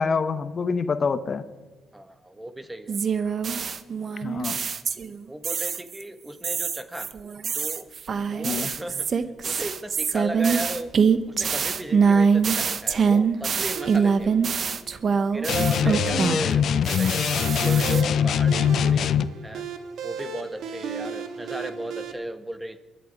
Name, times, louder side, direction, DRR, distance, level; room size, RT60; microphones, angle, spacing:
voice 1, 0.0-1.4 4.2-4.6 8.4-8.7, left 5 dB, 40° left, 11 dB, 0.8 m, -26 dB
voice 2, 1.9-3.0 4.5-4.6 5.3-7.1 7.5-7.9 8.3-10.9 11.3-14.5 15.1-19.1 19.4-19.7 20.0-22.8, right 1 dB, 10° right, 10 dB, 1.3 m, -36 dB
sound 1, 2.9-5.2 5.4-6.0 6.4-16.5 16.8-18.0, right 6 dB, 50° right, 0.9 m, -24 dB
sound 2, 13.8-22.1, right 6 dB, 75° right, 1.6 m, -35 dB
sound 3, 15.5-19.3, left 8 dB, 65° left, 0.6 m, -22 dB
23.0 x 11.0 x 5.1 m, 1.3 s
cardioid pair, 90°, 0 cm